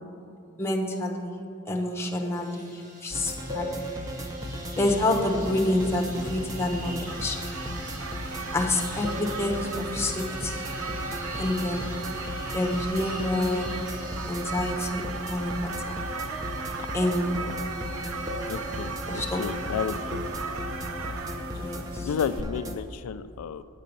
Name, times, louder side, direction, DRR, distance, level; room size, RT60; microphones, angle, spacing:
voice 1, 0.6-1.3 1.7-3.8 4.8-7.5 8.5-10.6 11.4-11.9 12.5-13.8 14.3-16.0 16.9-17.5 19.1-19.5 21.6-22.1, left 1 dB, 10° left, 0 dB, 0.9 m, -28 dB
sound 1, 2.3-20.6, right 1 dB, 40° right, 1.6 m, -46 dB
sound 2, 3.1-22.8, equal, 15° right, 0.5 m, -36 dB
sound 3, 5.4-22.4, right 4 dB, 70° right, 0.6 m, -37 dB
voice 2, 18.5-20.3 21.5-21.7 22.0-23.6, left 7 dB, 85° left, 11 dB, 0.3 m, -32 dB
9.7 x 7.5 x 5.3 m, 2.6 s
head